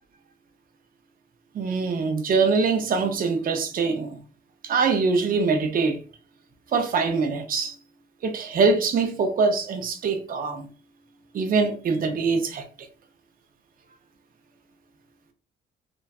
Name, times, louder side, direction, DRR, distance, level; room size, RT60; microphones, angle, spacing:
voice 1, 1.5-4.2 4.6-6.0 6.7-7.8 8.2-10.7 11.3-12.6, right 4 dB, 45° right, 0.5 m, -23 dB
2.4 x 2.2 x 2.3 m
cardioid pair, 90°, 20 cm